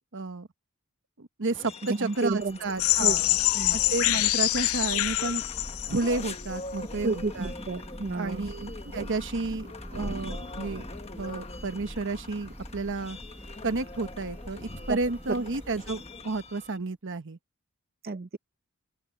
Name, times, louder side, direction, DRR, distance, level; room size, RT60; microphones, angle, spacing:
voice 1, 0.1-0.5 1.2-1.7 2.0-3.2 3.7-5.4 5.9-7.5 8.1-10.8 11.2-13.2 13.6-17.4, right 3 dB, 60° right, 1.1 m, -31 dB
sound 1, 1.5-16.8, left 3 dB, 30° left, 1.2 m, -44 dB
voice 2, 1.9-2.6 3.0-3.1 3.5-3.8 7.0-8.5 9.0-9.1 14.9-15.0 18.0-18.4, right 3 dB, 45° right, 0.7 m, -31 dB
Thunder / Rain, 2.3-16.7, equal, 5° right, 1.1 m, -43 dB
sound 2, 2.8-6.4, left 16 dB, 65° left, 0.5 m, -25 dB
open air
head